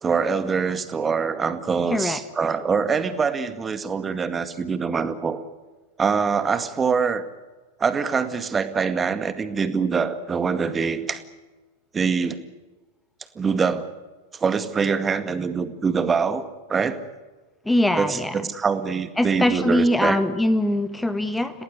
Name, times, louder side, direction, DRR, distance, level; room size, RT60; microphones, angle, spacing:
voice 1, 0.0-5.4 6.0-7.3 7.8-11.2 11.9-12.4 13.4-13.9 14.3-17.0 18.0-20.2, right 5 dB, 20° right, 10 dB, 2.1 m, -24 dB
voice 2, 17.6-18.5 19.2-21.6, left 1 dB, 5° left, 10 dB, 1.6 m, -22 dB
29.0 x 18.5 x 8.2 m, 1.2 s
figure-of-eight pair, 90°, 0 cm